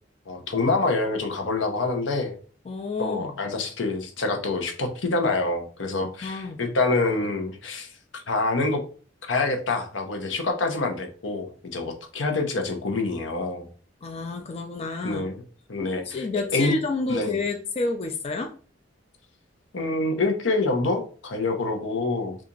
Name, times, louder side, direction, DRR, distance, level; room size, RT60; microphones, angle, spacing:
voice 1, 0.3-2.4 3.0-7.9 8.3-8.8 9.3-13.7 15.0-15.4 15.7-16.0 16.5-16.7 17.1-17.4 19.7-22.4, left 3 dB, 80° left, 4 dB, 0.7 m, -26 dB
voice 2, 2.7-3.4 6.0-6.6 14.0-15.3 16.0-18.5, left 3 dB, 35° left, 4 dB, 0.4 m, -30 dB
2.8 x 2.4 x 3.7 m, 0.40 s
head